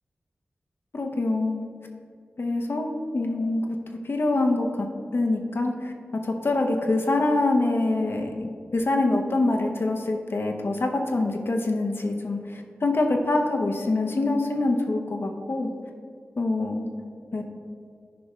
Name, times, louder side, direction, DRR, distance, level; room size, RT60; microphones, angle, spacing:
voice 1, 0.9-1.7 2.4-3.8 4.0-4.9 5.1-5.9 6.2-15.7 16.4-16.9 17.3-17.4, left 2 dB, 60° left, 2 dB, 0.8 m, -25 dB
10.0 x 4.9 x 3.2 m, 2.2 s
cardioid pair, 50°, 5 cm